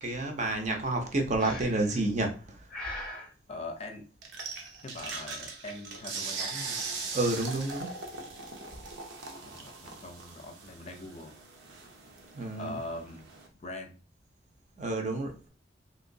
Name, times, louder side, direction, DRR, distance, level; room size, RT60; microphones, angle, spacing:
voice 1, 0.0-2.7 7.1-7.9 12.3-12.8 14.8-15.5, right 2 dB, 40° right, 0.6 m, -30 dB
Breathing, 1.4-2.0 2.7-3.3, left 1 dB, 5° left, 0.8 m, -40 dB
voice 2, 3.5-4.1 4.8-6.8 9.2-11.3 12.5-13.3 13.6-14.0, left 2 dB, 35° left, 0.5 m, -42 dB
sound 1, 4.2-13.5, right 4 dB, 85° right, 0.7 m, -40 dB
2.9 x 2.9 x 2.6 m
head